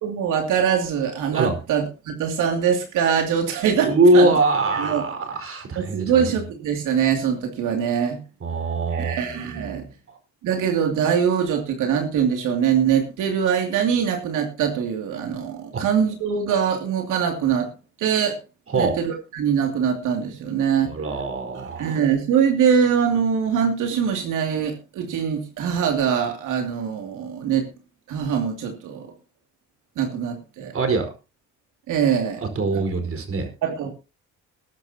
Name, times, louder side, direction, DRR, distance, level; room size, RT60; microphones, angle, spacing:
voice 1, 0.0-4.3 4.7-5.1 5.8-8.2 8.9-9.9 10.4-17.7 18.0-18.4 18.8-20.9 21.8-27.7 28.1-29.1 30.0-30.7 31.9-32.4 32.7-32.8 33.6-33.9, right 7 dB, 85° right, 3 dB, 2.7 m, -23 dB
voice 2, 3.9-6.2 8.4-10.2 15.7-15.9 18.7-19.0 20.9-22.0 30.7-31.1 32.4-33.5, right 2 dB, 45° right, 6 dB, 4.7 m, -22 dB
21.0 x 10.5 x 2.9 m, 0.31 s
cardioid pair, 90°, 30 cm